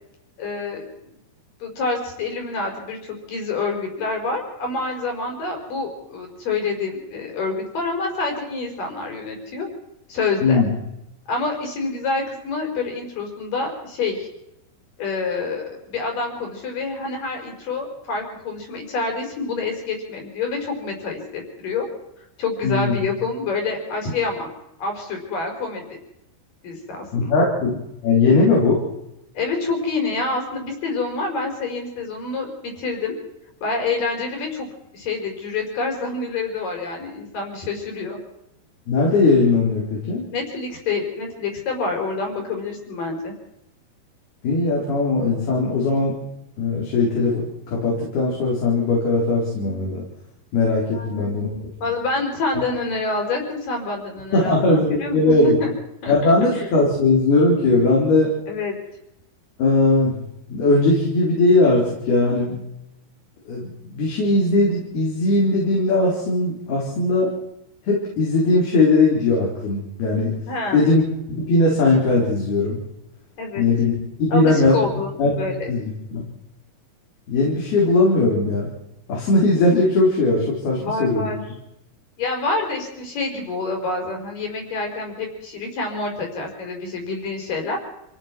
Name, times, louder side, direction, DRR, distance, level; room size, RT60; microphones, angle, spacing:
voice 1, 0.4-1.1 1.6-9.7 10.1-10.6 11.3-14.3 15.0-21.9 22.4-24.5 24.8-26.0 26.6-27.4 29.3-33.1 33.6-34.7 34.9-38.2 40.3-43.3 50.9-51.3 51.8-54.6 55.0-55.7 56.0-56.7 58.5-58.7 70.5-70.8 73.4-73.6 74.3-75.7 80.8-81.4 82.2-87.8, left 3 dB, 60° left, 3 dB, 6.6 m, -27 dB
voice 2, 22.6-23.0 27.1-27.8 28.0-28.8 38.9-40.2 44.4-46.2 46.6-50.1 50.5-51.6 54.3-55.6 56.1-58.3 59.6-60.2 60.5-62.6 63.5-67.3 67.9-70.4 70.7-71.0 71.4-72.8 73.6-73.9 74.2-74.8 75.2-75.3 75.7-75.8 76.1-76.3 77.3-78.7 79.1-81.3, left 2 dB, 80° left, -3 dB, 6.4 m, -19 dB
27.5 x 18.0 x 6.1 m, 0.87 s
omnidirectional pair, 4.5 m